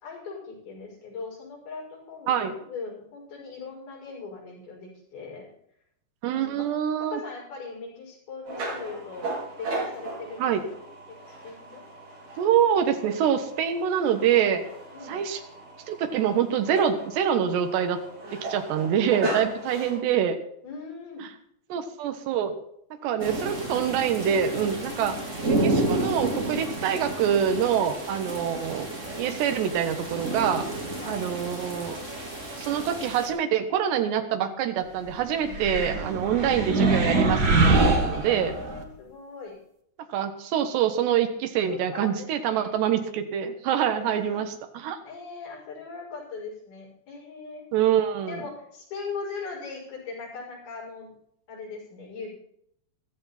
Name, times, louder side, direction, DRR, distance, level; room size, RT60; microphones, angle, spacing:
voice 1, 0.0-5.5 6.3-6.7 7.0-10.5 11.1-11.8 14.9-15.2 19.6-20.0 20.6-21.3 23.0-23.5 24.9-25.1 31.0-31.2 38.1-39.6 41.7-42.7 43.9-44.5 45.0-47.6 48.2-51.1 51.5-52.4, left 4 dB, 65° left, -2 dB, 7.8 m, -40 dB
voice 2, 6.2-7.2 10.4-10.6 12.4-14.6 15.1-15.4 15.9-18.0 18.3-20.4 21.7-22.5 23.0-25.1 25.5-28.9 29.2-30.7 31.1-32.0 32.6-38.5 40.1-45.0 47.7-48.4, right 9 dB, 85° right, 7 dB, 3.5 m, -25 dB
sound 1, 8.5-20.0, right 2 dB, 65° right, 7.4 m, -37 dB
sound 2, 23.2-33.3, right 2 dB, 20° right, 3.5 m, -31 dB
sound 3, 35.5-38.8, right 3 dB, 45° right, 1.3 m, -23 dB
15.5 x 14.0 x 4.3 m, 0.69 s
omnidirectional pair, 4.8 m